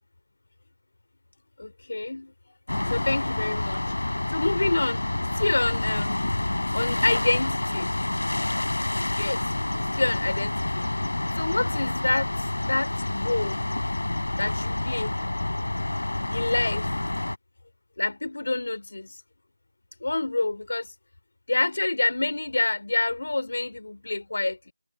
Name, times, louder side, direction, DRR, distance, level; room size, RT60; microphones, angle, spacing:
voice 1, 1.6-2.3 2.9-3.8 4.3-5.1 5.3-6.3 6.7-8.0 9.1-9.4 10.0-10.9 11.3-12.4 12.7-13.6 14.4-15.2 16.3-16.9 18.0-19.2 20.0-20.9 21.5-24.7, left 2 dB, 45° left, 3.2 m, -27 dB
sound 1, 2.7-17.4, left 2 dB, 65° left, 3.9 m, -28 dB
figure-of-eight pair, 175°, 0 cm